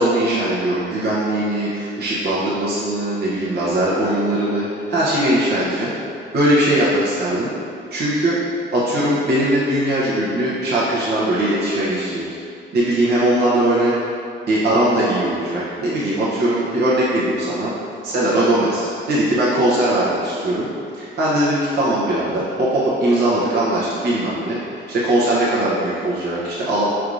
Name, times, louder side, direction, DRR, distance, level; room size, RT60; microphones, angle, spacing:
voice 1, 0.0-5.9 6.3-7.5 7.9-8.4 8.7-12.4 12.7-13.9 14.5-17.7 18.0-20.7 21.0-26.8, right 1 dB, 55° right, -8 dB, 0.9 m, -20 dB
4.6 x 3.5 x 2.5 m, 2.5 s
cardioid pair, 90°, 20 cm